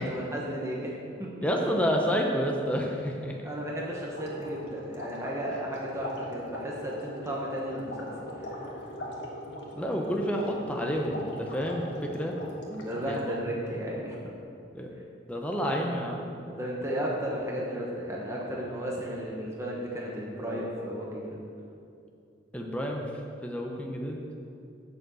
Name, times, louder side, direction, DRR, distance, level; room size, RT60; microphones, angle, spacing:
voice 1, 0.0-1.3 3.4-8.1 8.4-8.9 12.6-14.2 16.5-21.4, equal, 15° right, -3 dB, 1.1 m, -34 dB
voice 2, 1.4-3.4 9.7-12.4 13.1-13.2 14.7-14.9 15.3-16.3 22.5-23.0 23.4-24.2, equal, 5° left, 0 dB, 0.8 m, -29 dB
sound 1, 3.8-13.2, equal, 65° left, 1.6 m, -41 dB
7.2 x 6.7 x 7.8 m, 2.5 s
head